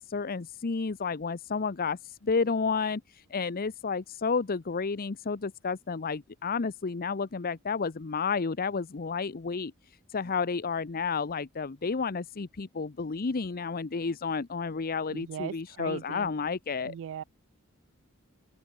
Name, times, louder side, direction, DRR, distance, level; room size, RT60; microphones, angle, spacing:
voice 1, 0.0-9.7 10.1-16.9, left 5 dB, 45° left, 0.7 m, -31 dB
voice 2, 15.1-16.3 16.8-17.2, right 8 dB, 60° right, 0.3 m, -39 dB
open air
head